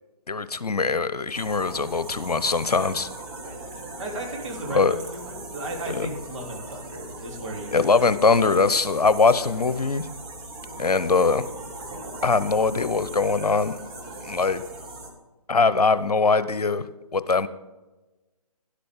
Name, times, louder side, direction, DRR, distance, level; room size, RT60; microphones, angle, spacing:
voice 1, 0.3-3.1 4.7-5.0 5.9-6.1 7.7-10.1 10.8-11.4 12.2-13.7 14.2-14.6 15.5-16.8 17.1-17.5, left 4 dB, 75° left, 15 dB, 0.9 m, -22 dB
sound 1, 1.3-15.1, right 2 dB, 20° right, 1.9 m, -39 dB
voice 2, 3.4-7.9 8.2-8.3, right 1 dB, 50° right, 0 dB, 3.5 m, -35 dB
12.0 x 11.5 x 3.7 m, 1.1 s
figure-of-eight pair, 140°, 20 cm